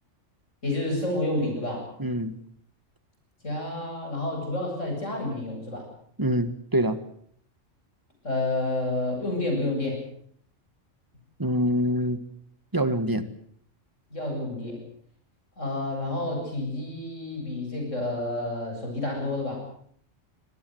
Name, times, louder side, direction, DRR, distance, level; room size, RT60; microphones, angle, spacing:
voice 1, 0.6-1.9 3.4-5.9 8.2-10.0 14.1-14.8 15.6-19.6, left 2 dB, 80° left, 1 dB, 8.5 m, -29 dB
voice 2, 2.0-2.3 6.2-7.0 11.4-12.2 12.7-13.3, equal, 15° right, 11 dB, 1.6 m, -25 dB
25.0 x 18.5 x 7.9 m, 0.63 s
omnidirectional pair, 1.3 m